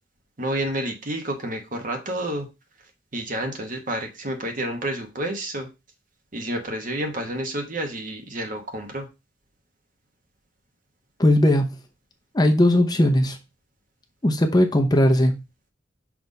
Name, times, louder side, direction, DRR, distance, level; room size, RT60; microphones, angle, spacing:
voice 1, 0.4-2.5 3.1-5.7 6.3-9.1, right 1 dB, 45° right, 4 dB, 1.4 m, -29 dB
voice 2, 11.2-11.8 12.3-13.4 14.2-15.3, left 1 dB, 20° left, 4 dB, 0.8 m, -18 dB
6.1 x 3.5 x 5.3 m, 0.26 s
head